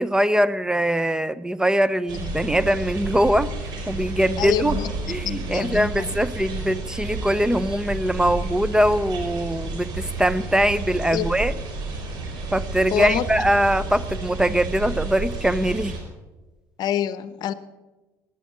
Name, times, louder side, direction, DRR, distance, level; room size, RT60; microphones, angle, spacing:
voice 1, 0.0-3.5 3.9-4.8 5.1-11.5 12.5-16.0, equal, 10° right, 16 dB, 0.5 m, -22 dB
sound 1, 2.1-16.0, right 3 dB, 65° right, 4.3 m, -31 dB
voice 2, 4.4-6.2 11.1-11.3 12.9-13.5 16.8-17.5, left 10 dB, 65° left, 15 dB, 0.8 m, -27 dB
16.5 x 11.0 x 7.3 m, 1.2 s
supercardioid pair, 85°, 8 cm